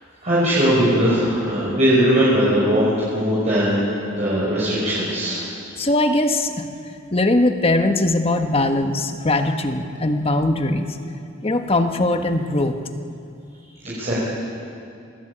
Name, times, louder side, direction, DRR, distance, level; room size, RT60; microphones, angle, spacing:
voice 1, 0.2-3.8 4.1-5.4 13.8-14.2, equal, 35° right, -8 dB, 6.5 m, -19 dB
voice 2, 5.8-6.7 7.1-10.8 11.4-12.8, left 2 dB, 30° left, 6 dB, 1.4 m, -20 dB
25.5 x 19.5 x 8.8 m, 2.5 s
head